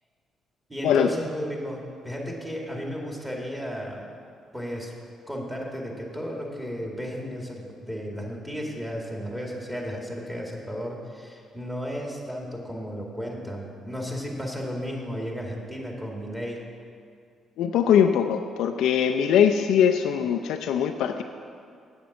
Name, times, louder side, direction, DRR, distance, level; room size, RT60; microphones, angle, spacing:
voice 1, 0.7-4.0 4.5-4.9 5.3-16.6, equal, 10° right, -2 dB, 2.3 m, -34 dB
voice 2, 17.6-21.2, left 8 dB, 85° left, 6 dB, 0.4 m, -21 dB
8.7 x 7.1 x 7.4 m, 2.3 s
cardioid pair, 90°, 0 cm